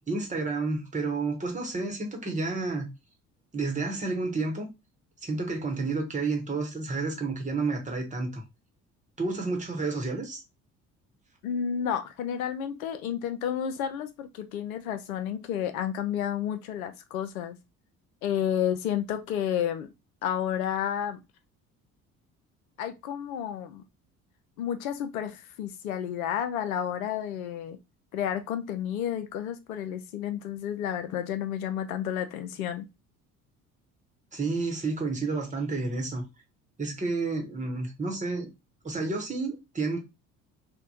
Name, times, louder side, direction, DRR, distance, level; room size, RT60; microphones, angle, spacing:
voice 1, 0.1-2.9 3.5-4.7 5.2-8.4 9.2-10.4 34.3-36.2 36.8-38.5 38.8-40.0, right 3 dB, 15° right, 1.0 m, -30 dB
voice 2, 11.4-17.6 18.2-19.9 20.2-21.2 22.8-23.8 24.6-27.8 28.1-32.9, left 9 dB, 75° left, 0.5 m, -31 dB
3.3 x 2.1 x 2.6 m
figure-of-eight pair, 55°, 43 cm